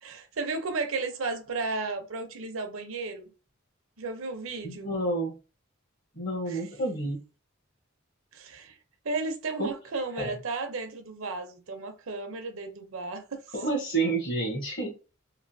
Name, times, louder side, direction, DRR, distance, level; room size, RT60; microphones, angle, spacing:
voice 1, 0.0-3.3 4.0-4.9 6.5-6.6 8.3-8.8 9.0-13.4, right 3 dB, 70° right, 0.7 m, -34 dB
voice 2, 4.6-5.3 6.2-7.2 9.6-9.7 10.1-10.4 13.5-14.9, right 2 dB, 50° left, 0.9 m, -29 dB
3.0 x 2.5 x 2.6 m
head